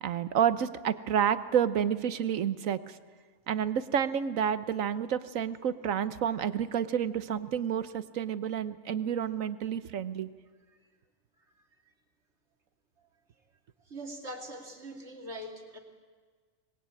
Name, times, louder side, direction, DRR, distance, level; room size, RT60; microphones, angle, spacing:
voice 1, 0.0-2.8 3.5-10.3, right 8 dB, 80° right, 14 dB, 1.3 m, -29 dB
voice 2, 13.9-15.8, right 1 dB, 55° right, 3 dB, 3.1 m, -42 dB
26.0 x 21.0 x 8.4 m, 1.5 s
omnidirectional pair, 1.4 m